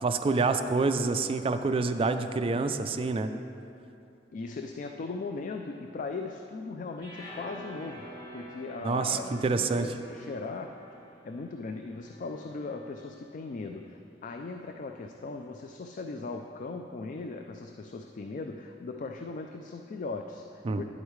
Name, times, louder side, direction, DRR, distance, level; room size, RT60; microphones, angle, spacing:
voice 1, 0.0-3.3 8.8-9.9 20.6-20.8, right 3 dB, 30° right, 8 dB, 0.3 m, -27 dB
voice 2, 4.3-10.8 11.2-20.8, left 3 dB, 45° left, 4 dB, 0.3 m, -38 dB
sound 1, 7.0-13.2, equal, 25° left, 2.0 m, -48 dB
9.9 x 8.1 x 3.2 m, 2.6 s
head